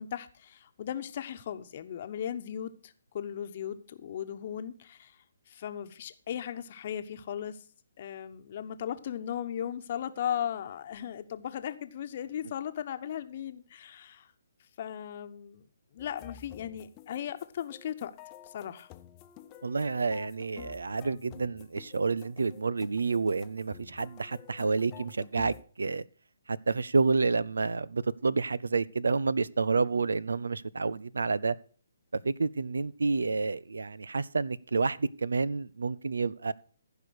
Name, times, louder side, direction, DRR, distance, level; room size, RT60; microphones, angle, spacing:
voice 1, 0.0-7.6 8.0-14.3 14.8-15.7 15.9-18.1 18.4-18.9, left 9 dB, 45° left, 1.1 m, -37 dB
sound 1, 16.0-25.6, left 11 dB, 25° left, 0.8 m, -51 dB
voice 2, 19.6-26.0 26.5-31.6 32.1-36.5, right 4 dB, 85° right, 0.5 m, -29 dB
15.0 x 5.1 x 6.4 m
hypercardioid pair, 145°, 0 cm